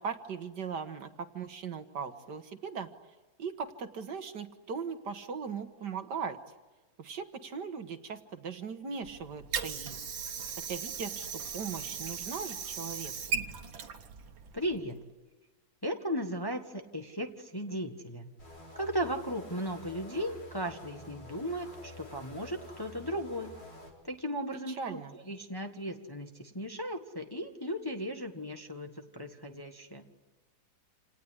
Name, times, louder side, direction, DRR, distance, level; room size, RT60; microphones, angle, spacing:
voice 1, 0.0-2.9 3.4-6.4 7.0-10.0 10.7-13.1 24.7-25.1, right 6 dB, 60° right, 8 dB, 1.9 m, -39 dB
Water / Sink (filling or washing), 9.0-15.0, right 6 dB, 80° right, 2.0 m, -38 dB
voice 2, 14.5-14.9 15.8-18.3 18.7-23.5 24.0-30.1, equal, 15° left, 4 dB, 1.3 m, -36 dB
sound 1, 18.4-23.9, left 2 dB, 65° left, 5.2 m, -49 dB
28.0 x 19.0 x 9.8 m, 1.2 s
omnidirectional pair, 2.1 m